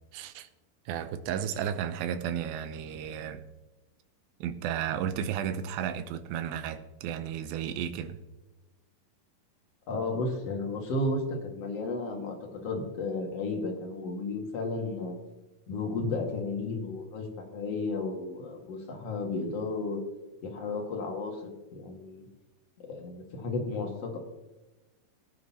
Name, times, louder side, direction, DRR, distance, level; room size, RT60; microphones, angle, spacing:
voice 1, 0.1-0.5 0.9-3.4 4.4-8.2, right 9 dB, 80° right, 2.4 m, -33 dB
voice 2, 9.9-15.2 15.7-20.0 20.4-22.2 22.8-24.2, left 3 dB, 50° left, 2.4 m, -33 dB
19.5 x 9.7 x 2.9 m
omnidirectional pair, 4.5 m